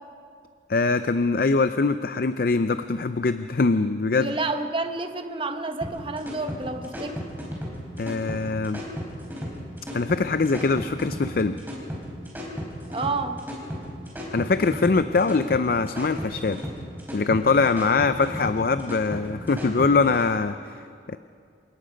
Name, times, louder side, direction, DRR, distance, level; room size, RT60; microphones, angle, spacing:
voice 1, 0.7-4.3 8.0-8.8 9.9-11.6 14.3-16.6 17.1-20.8 21.1-21.2, left 4 dB, 55° left, 11 dB, 0.5 m, -23 dB
voice 2, 4.2-7.2 12.9-13.4, right 3 dB, 30° right, 7 dB, 1.1 m, -29 dB
sound 1, 5.8-20.2, equal, 10° right, 4.4 m, -34 dB
28.0 x 18.0 x 5.2 m, 2.3 s
head